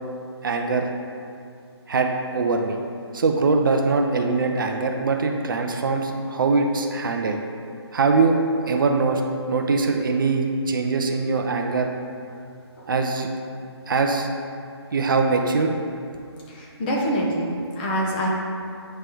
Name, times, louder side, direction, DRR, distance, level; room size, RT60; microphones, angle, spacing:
voice 1, 0.4-0.9 1.9-2.8 3.1-7.4 7.9-8.4 8.7-9.2 9.5-11.9 12.9-13.3 13.9-14.3 14.9-15.7, right 4 dB, 50° right, 3 dB, 0.5 m, -22 dB
voice 2, 16.5-18.3, equal, 20° left, -3 dB, 0.7 m, -25 dB
8.9 x 3.2 x 3.5 m, 2.4 s
figure-of-eight pair, 155°, 14 cm